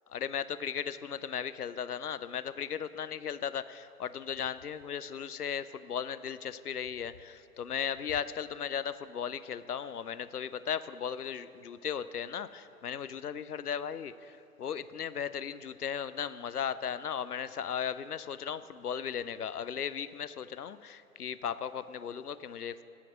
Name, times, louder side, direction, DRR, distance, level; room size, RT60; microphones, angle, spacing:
voice 1, 0.1-22.8, left 8 dB, 80° left, 15 dB, 0.6 m, -36 dB
16.0 x 5.8 x 6.3 m, 2.8 s
figure-of-eight pair, 125°, 45 cm